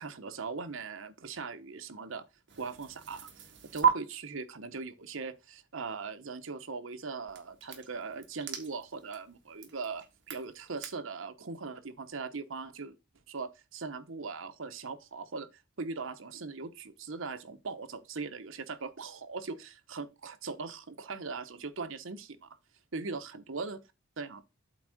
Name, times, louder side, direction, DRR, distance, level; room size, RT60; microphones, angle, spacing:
voice 1, 0.0-2.2 2.6-3.4 3.7-12.9 13.3-22.6 22.9-23.8 24.2-24.4, right 4 dB, 75° right, 0.9 m, -40 dB
sound 1, 2.5-3.9 7.3-10.9, right 7 dB, 60° right, 1.6 m, -35 dB
8.1 x 3.6 x 6.3 m
head